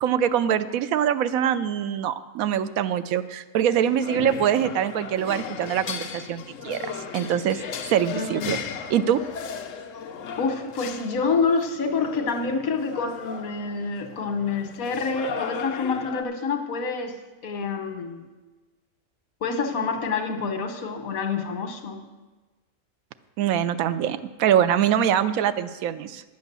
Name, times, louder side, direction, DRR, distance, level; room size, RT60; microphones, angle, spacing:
voice 1, 0.0-7.6 7.9-8.6 8.9-9.2 23.4-26.2, right 9 dB, 90° right, 13 dB, 1.1 m, -24 dB
sound 1, 3.7-16.2, left 6 dB, 70° left, 1.1 m, -36 dB
voice 2, 8.1-8.6 10.4-17.2 17.4-18.2 19.4-22.0, left 4 dB, 90° left, 7 dB, 1.5 m, -27 dB
10.5 x 8.1 x 6.8 m, 1.2 s
omnidirectional pair, 1.4 m